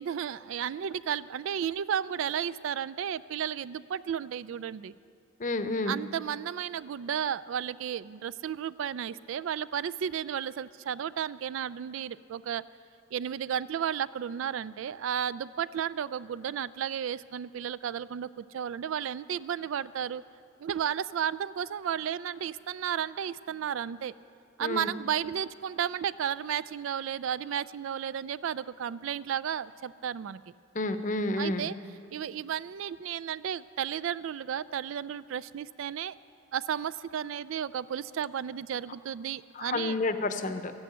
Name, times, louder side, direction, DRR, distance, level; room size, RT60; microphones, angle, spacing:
voice 1, 0.0-4.9 5.9-12.6 13.1-20.2 20.6-24.1 24.6-30.4 31.4-31.8 32.1-36.1 36.5-40.0, right 8 dB, 70° right, 17 dB, 0.3 m, -33 dB
voice 2, 5.4-6.0 24.6-24.9 30.7-31.7 39.6-40.7, left 2 dB, 40° left, 9 dB, 0.7 m, -30 dB
13.5 x 10.5 x 8.5 m, 2.4 s
head